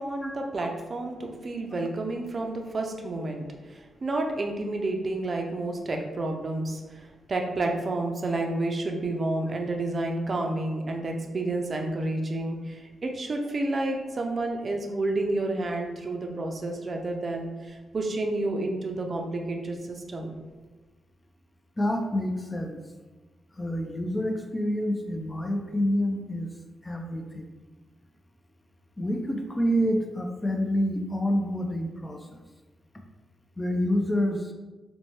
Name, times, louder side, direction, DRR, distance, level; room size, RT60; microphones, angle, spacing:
voice 1, 0.0-20.4, right 2 dB, 45° right, 2 dB, 0.4 m, -30 dB
voice 2, 21.8-22.8 23.6-26.5 26.8-27.5 29.0-32.4 33.6-34.5, equal, 20° left, 3 dB, 0.4 m, -27 dB
2.7 x 2.1 x 3.1 m, 1.2 s
cardioid pair, 65°, 0 cm